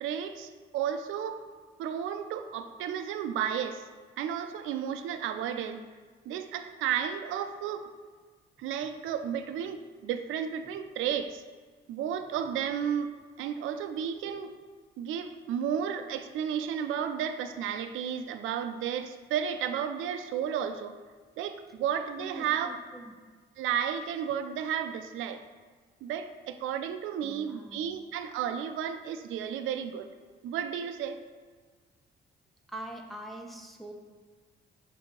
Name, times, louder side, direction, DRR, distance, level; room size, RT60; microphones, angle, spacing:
voice 1, 0.0-1.4 1.8-3.8 4.2-5.8 6.3-7.9 8.6-11.4 11.9-13.1 13.4-14.6 15.0-20.9 21.4-22.7 23.6-25.4 26.0-30.1 30.4-31.2, right 8 dB, 85° right, 9 dB, 0.4 m, -33 dB
voice 2, 22.2-23.1 27.2-27.8 32.7-33.9, right 1 dB, ahead, 1 dB, 0.8 m, -43 dB
6.8 x 2.7 x 5.2 m, 1.5 s
cardioid pair, 90°, 20 cm